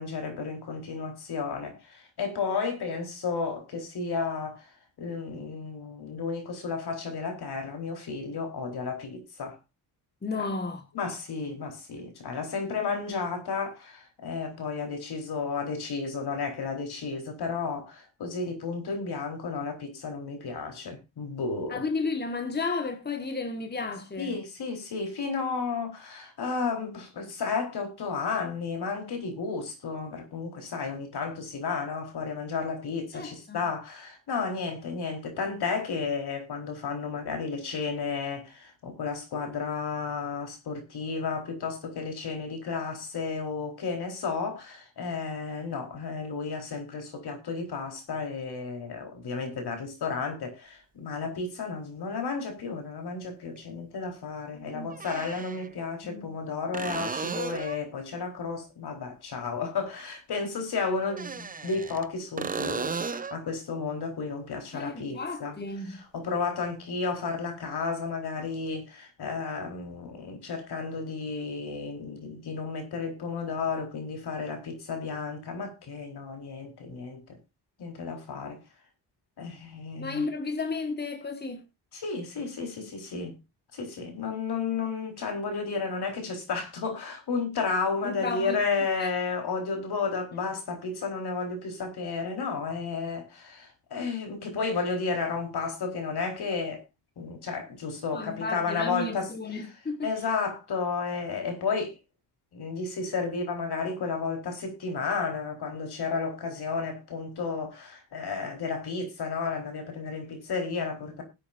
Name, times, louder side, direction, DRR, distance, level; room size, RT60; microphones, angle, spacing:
voice 1, 0.0-4.6 5.0-9.6 10.4-10.5 10.9-21.9 24.2-65.6 65.9-77.2 77.8-78.6 79.4-80.3 81.9-83.4 83.7-96.8 97.2-99.3 99.6-99.7 100.0-101.9 102.5-111.2, left 4 dB, 65° left, 4.2 m, -32 dB
voice 2, 10.2-10.8 21.7-24.3 33.1-33.6 54.5-54.9 56.0-56.3 64.7-66.0 80.0-81.6 88.0-88.6 89.0-89.1 98.1-100.1, left 3 dB, 25° left, 1.6 m, -33 dB
sound 1, 51.4-51.5 53.6-53.7 54.9-55.7 56.7-57.9 61.0-62.1 62.4-63.4 67.1-67.2, right 5 dB, 20° right, 0.6 m, -34 dB
20.5 x 8.5 x 2.6 m
cardioid pair, 90°, 41 cm